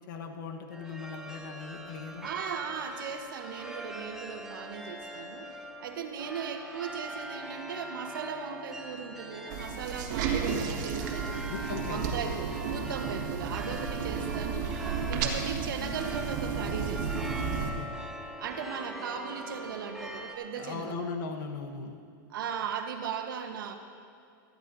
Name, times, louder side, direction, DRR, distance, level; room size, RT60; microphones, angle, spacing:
voice 1, 0.1-2.3 11.5-12.1 17.5-17.9 20.5-22.0, left 5 dB, 70° left, 3 dB, 1.2 m, -39 dB
sound 1, 0.7-20.4, right 1 dB, 5° right, 1.0 m, -42 dB
voice 2, 2.2-11.4 11.9-17.4 18.4-21.1 22.3-23.8, right 7 dB, 85° right, 6 dB, 1.2 m, -38 dB
sound 2, 9.5-17.7, right 6 dB, 60° right, 1.7 m, -33 dB
17.5 x 13.5 x 2.7 m, 2.4 s
supercardioid pair, 145°, 11 cm